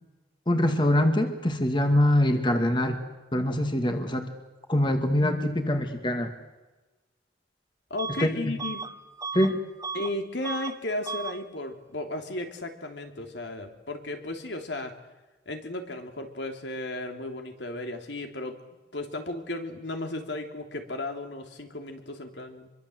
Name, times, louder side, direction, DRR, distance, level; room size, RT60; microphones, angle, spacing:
voice 1, 0.5-3.0 3.3-4.2 4.7-6.3 8.2-8.3 9.3-9.6, left 1 dB, 25° left, 6 dB, 2.0 m, -23 dB
voice 2, 7.9-8.8 9.9-14.9 15.5-18.6 18.9-22.7, left 2 dB, 70° left, 5 dB, 3.1 m, -34 dB
Bus / Alarm, 8.0-8.3 8.6-10.2 10.4-10.8 11.0-11.4, right 4 dB, 15° right, 0.9 m, -35 dB
26.0 x 23.5 x 7.9 m, 1.1 s
head